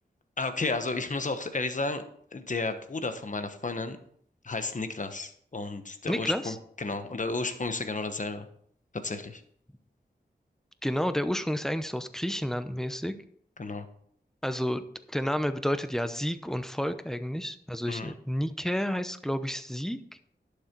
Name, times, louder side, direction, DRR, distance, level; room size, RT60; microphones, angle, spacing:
voice 1, 0.4-2.0 2.3-4.0 4.4-8.5 9.0-9.4 13.6-13.9 17.9-18.1, left 3 dB, 45° left, 8 dB, 1.2 m, -32 dB
voice 2, 6.1-6.5 10.8-13.1 14.4-14.8 15.1-20.0, equal, 5° left, 10 dB, 0.8 m, -30 dB
11.5 x 6.8 x 4.6 m, 0.64 s
wide cardioid pair, 75°, 18 cm